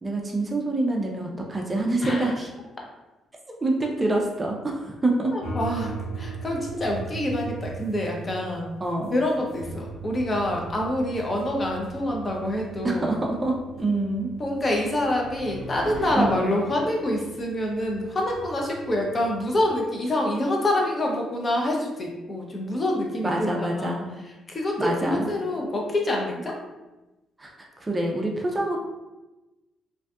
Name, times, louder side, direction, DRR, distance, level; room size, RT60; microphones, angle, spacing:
voice 1, 0.0-2.5 3.6-5.3 8.8-9.1 12.8-14.3 16.1-16.6 23.2-24.1 24.8-25.3 27.4-28.8, right 2 dB, 20° right, 0 dB, 0.4 m, -26 dB
voice 2, 5.3-8.7 9.1-13.1 14.4-24.0 24.5-26.6, left 1 dB, 30° left, -1 dB, 0.5 m, -26 dB
sound 1, 5.4-19.6, right 3 dB, 70° left, 0.7 m, -39 dB
2.6 x 2.4 x 2.3 m, 1.1 s
cardioid pair, 90°, 0 cm